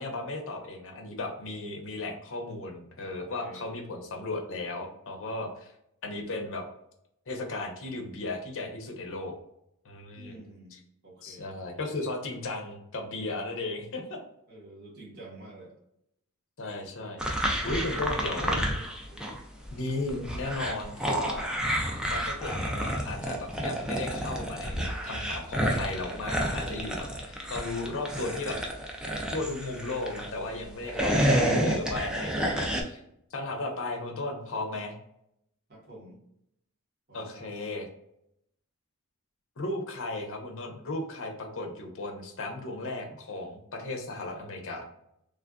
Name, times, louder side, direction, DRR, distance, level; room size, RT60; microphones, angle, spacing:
voice 1, 0.0-5.7 6.0-6.6 7.3-9.3 9.8-10.4 10.7-10.8 11.2-14.2 16.6-17.2 17.6-18.6 19.7-21.5 22.0-28.6 29.3-33.0 33.3-35.0 37.1-37.9 39.6-44.9, left 2 dB, 65° left, 2 dB, 0.7 m, -35 dB
voice 2, 3.0-3.7 10.1-11.5 12.0-12.1 14.5-15.7 16.9-17.4 18.0-19.4 33.4-33.6 35.7-36.2 37.1-37.5 43.1-43.2, right 1 dB, 50° right, -3 dB, 1.1 m, -49 dB
sound 1, 17.2-19.4 19.7-30.3 30.7-32.8, equal, 5° right, 0.4 m, -30 dB
3.2 x 2.4 x 2.3 m, 0.78 s
head